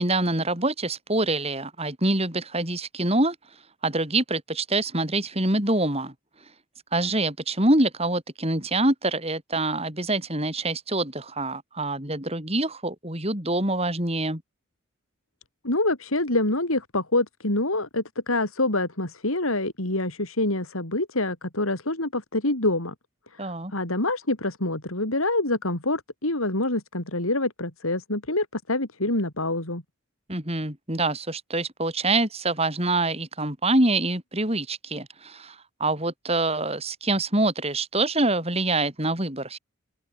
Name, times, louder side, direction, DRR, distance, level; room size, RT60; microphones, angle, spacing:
voice 1, 0.0-3.4 3.8-6.1 6.9-14.4 23.4-23.7 30.3-39.6, right 2 dB, 30° right, 7.5 m, -25 dB
voice 2, 15.6-22.9 23.3-29.8, left 2 dB, 85° left, 5.3 m, -26 dB
open air
head